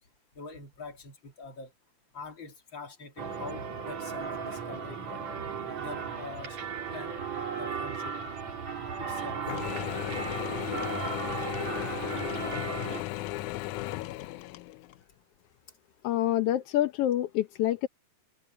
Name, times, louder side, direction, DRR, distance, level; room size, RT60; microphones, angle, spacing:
voice 1, 0.4-1.7 2.1-5.3 5.8-6.6 6.9-7.1 7.5-8.1 9.0-9.4, left 4 dB, 40° left, 3.4 m, -44 dB
sound 1, 3.2-13.0, right 6 dB, 65° right, 4.4 m, -36 dB
Mechanisms / Drill, 9.5-15.0, left 17 dB, 85° left, 2.1 m, -35 dB
voice 2, 16.0-17.9, left 13 dB, 70° left, 1.5 m, -27 dB
omnidirectional pair, 3.4 m